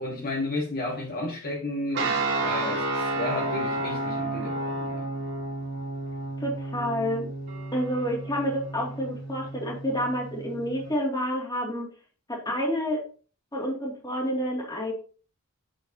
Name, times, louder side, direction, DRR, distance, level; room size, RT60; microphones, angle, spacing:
voice 1, 0.0-5.1, left 2 dB, 45° left, 1.6 m, -32 dB
sound 1, 1.9-10.9, right 2 dB, 55° right, 2.1 m, -31 dB
voice 2, 6.4-7.3 7.7-11.9 12.3-13.0 13.5-14.9, equal, 20° left, 2.4 m, -29 dB
7.6 x 7.6 x 2.8 m
head